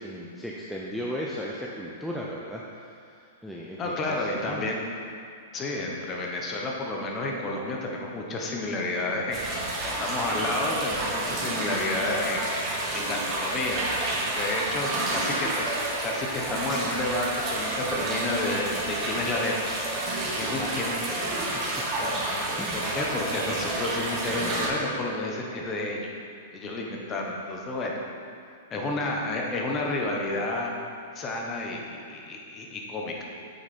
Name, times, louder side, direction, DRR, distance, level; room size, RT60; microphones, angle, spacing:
voice 1, 0.0-4.7 20.6-20.7 22.6-22.8, equal, ahead, -4 dB, 0.6 m, -36 dB
voice 2, 3.8-4.8 5.5-9.5 9.8-12.4 12.9-13.9 14.2-15.6 16.0-19.7 20.4-21.0 22.0-22.2 22.7-26.1 26.5-27.9 28.7-30.7 31.1-33.3, left 2 dB, 25° left, -1 dB, 1.2 m, -30 dB
sound 1, 9.3-24.7, right 2 dB, 25° right, 1.6 m, -30 dB
8.6 x 6.3 x 4.4 m, 2.3 s
hypercardioid pair, 150°, 0 cm